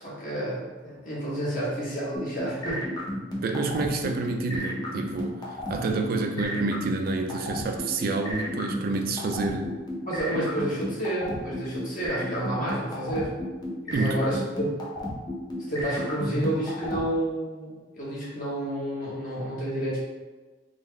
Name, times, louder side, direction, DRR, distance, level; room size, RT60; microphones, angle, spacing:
voice 1, 0.0-2.9 10.1-13.3 13.8-14.8 15.7-20.0, right 1 dB, 45° left, -7 dB, 1.0 m, -30 dB
sound 1, 2.1-17.0, left 1 dB, 20° left, 0.6 m, -32 dB
voice 2, 3.4-9.8 13.9-14.2, right 3 dB, 50° right, 4 dB, 0.3 m, -28 dB
3.8 x 2.0 x 3.2 m, 1.3 s
head